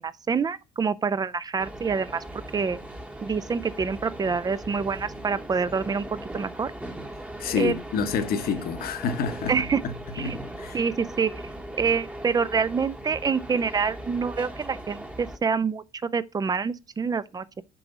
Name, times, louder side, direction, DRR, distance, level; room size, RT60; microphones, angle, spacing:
voice 1, 0.0-2.2 2.5-2.8 3.2-6.1 6.3-6.7 7.6-7.8 9.5-9.8 10.1-10.4 10.7-11.3 11.8-17.6, right 5 dB, 25° right, 0.4 m, -26 dB
sound 1, 1.6-15.4, right 1 dB, 5° right, 1.0 m, -39 dB
voice 2, 7.4-9.9 10.2-10.8, left 6 dB, 65° left, 1.0 m, -28 dB
6.9 x 4.8 x 4.0 m
cardioid pair, 110°, 17 cm